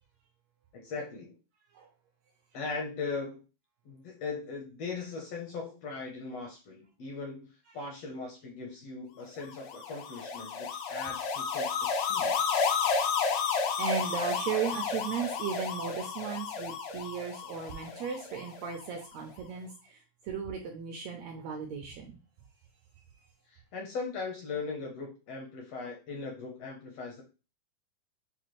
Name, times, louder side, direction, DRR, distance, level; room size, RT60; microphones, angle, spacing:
voice 1, 0.7-1.4 2.5-3.4 3.8-12.4 23.5-27.2, left 4 dB, 70° left, 1 dB, 1.5 m, -39 dB
sound 1, 9.5-18.8, left 5 dB, 90° left, 2.5 m, -32 dB
voice 2, 13.4-20.0 20.2-22.1, right 7 dB, 85° right, 3 dB, 1.5 m, -36 dB
7.0 x 2.4 x 3.0 m, 0.31 s
omnidirectional pair, 3.8 m